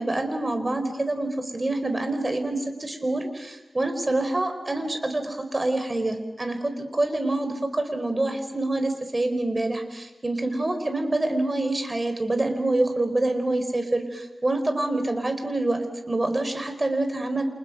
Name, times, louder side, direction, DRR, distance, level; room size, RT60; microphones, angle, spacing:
voice 1, 0.0-17.4, right 2 dB, 30° right, 7 dB, 4.5 m, -26 dB
30.0 x 27.5 x 6.0 m, 0.97 s
wide cardioid pair, 80°, 0 cm